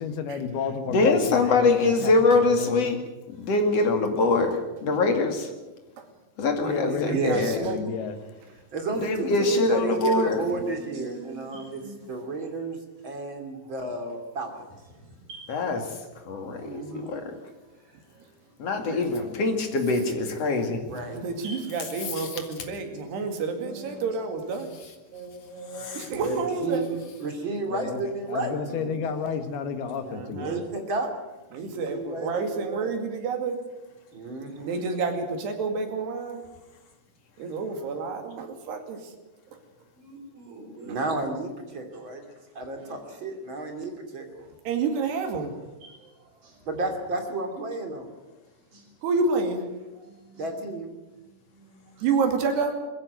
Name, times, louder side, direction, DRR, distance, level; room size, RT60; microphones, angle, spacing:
voice 1, 0.0-3.0 6.7-8.1 10.4-10.6 27.7-28.0 28.3-30.6, left 6 dB, 75° left, 8 dB, 3.5 m, -32 dB
voice 2, 0.9-3.0 3.4-5.5 6.4-7.3 9.0-10.4 15.5-15.8 16.3-17.3 18.6-20.8, left 3 dB, 45° left, 5 dB, 2.9 m, -23 dB
voice 3, 6.6-7.8 16.6-17.1 18.8-19.3 20.9-24.7 25.9-27.0 28.9-29.1 30.0-30.6 31.5-33.6 34.6-36.5 37.4-39.1 44.7-45.6 49.0-49.6 50.0-50.1 52.0-52.7, right 4 dB, 85° right, 5 dB, 4.5 m, -29 dB
voice 4, 7.1-7.7 8.7-11.8 12.1-12.8 13.0-14.7 20.8-21.2 26.1-26.8 27.2-28.9 30.3-31.1 31.7-32.9 34.1-34.8 40.8-42.2 42.5-44.4 46.7-48.1 50.4-50.9, right 2 dB, 35° right, 4 dB, 3.0 m, -31 dB
voice 5, 10.3-12.1 15.0-15.5 16.3-18.3 21.4-21.8 22.8-24.0 24.3-24.7 25.1-26.1 26.9-27.0 29.0-29.4 34.5-34.7 39.9-41.2 43.0-43.2 45.8-46.0 46.4-46.6 48.7-48.9 50.0-50.5 51.1-52.1, right 2 dB, 60° right, 2 dB, 5.8 m, -46 dB
21.0 x 15.5 x 9.4 m, 1.1 s
omnidirectional pair, 4.6 m